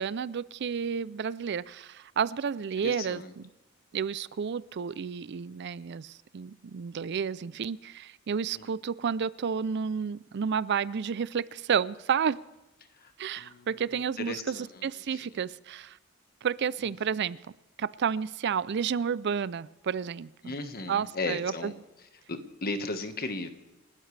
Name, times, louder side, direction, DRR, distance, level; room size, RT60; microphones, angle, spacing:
voice 1, 0.0-3.5 3.9-12.4 13.2-16.0 16.4-17.4 17.8-20.6 20.9-21.7, right 7 dB, 55° right, 19 dB, 0.4 m, -31 dB
voice 2, 2.8-3.3 8.5-8.6 13.0-13.1 13.4-13.7 14.2-14.8 15.1-15.2 20.4-21.7 22.3-23.5, left 2 dB, 45° left, 7 dB, 1.5 m, -35 dB
29.0 x 13.0 x 3.3 m, 1.0 s
head